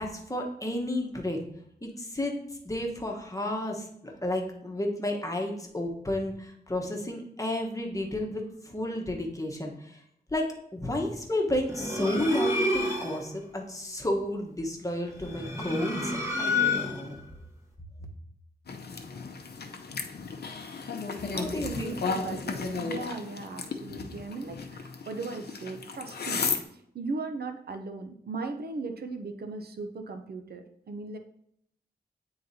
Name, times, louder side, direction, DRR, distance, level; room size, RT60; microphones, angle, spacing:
voice 1, 0.0-1.4 1.8-2.3 2.6-10.0 10.3-17.2 21.3-22.2 22.9-23.1, left 1 dB, 20° left, 1 dB, 1.1 m, -32 dB
sound 1, 11.7-13.3 15.1-17.2, left 2 dB, 15° right, 1.2 m, -29 dB
sound 2, 18.7-26.6, left 4 dB, 70° left, 0.6 m, -35 dB
voice 2, 21.3-26.4 26.9-31.2, right 3 dB, 65° right, 6 dB, 0.6 m, -37 dB
9.2 x 3.9 x 2.7 m, 0.71 s
wide cardioid pair, 85°, 17 cm